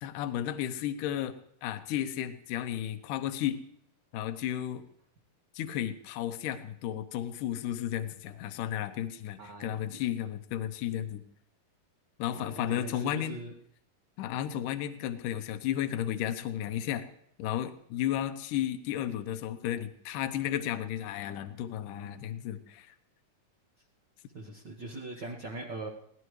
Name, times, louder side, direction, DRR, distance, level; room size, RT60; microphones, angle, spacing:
voice 1, 0.0-3.6 4.1-4.8 5.5-11.2 12.2-13.4 14.2-17.1 17.4-22.9, left 11 dB, 75° left, 9 dB, 2.4 m, -33 dB
voice 2, 9.4-10.0 12.3-13.5 24.3-25.9, right 2 dB, 50° right, -1 dB, 1.3 m, -41 dB
22.5 x 17.0 x 3.2 m, 0.69 s
omnidirectional pair, 4.1 m